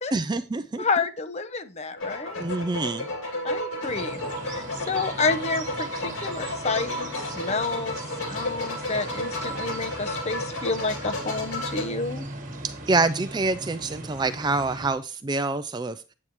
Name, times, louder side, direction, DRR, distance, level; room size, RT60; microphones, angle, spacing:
voice 1, 0.1-0.8 2.4-3.1 12.6-16.0, right 3 dB, 20° right, 12 dB, 0.3 m, -26 dB
voice 2, 0.8-2.4 3.4-12.3, left 4 dB, 30° left, 10 dB, 0.6 m, -30 dB
sound 1, 1.9-11.8, left 1 dB, 75° left, 2.9 m, -32 dB
sound 2, 3.8-14.9, right 2 dB, 40° right, 1.4 m, -39 dB
8.5 x 8.1 x 3.0 m, 0.31 s
head